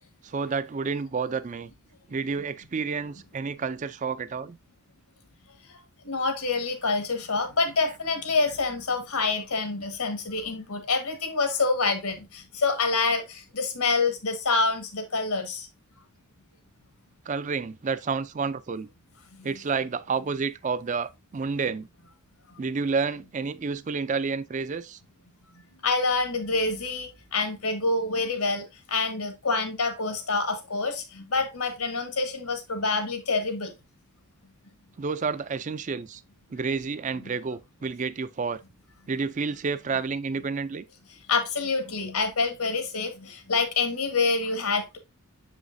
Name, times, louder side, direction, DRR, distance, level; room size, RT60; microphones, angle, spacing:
voice 1, 0.2-1.7 2.1-4.6 17.3-18.9 19.4-21.9 22.6-25.0 35.0-36.2 36.5-38.6 39.1-40.8, right 5 dB, 35° right, 0.4 m, -30 dB
voice 2, 6.0-15.7 19.4-19.5 25.8-33.7 41.3-45.0, left 3 dB, 80° left, 1.6 m, -27 dB
7.1 x 5.1 x 2.6 m
head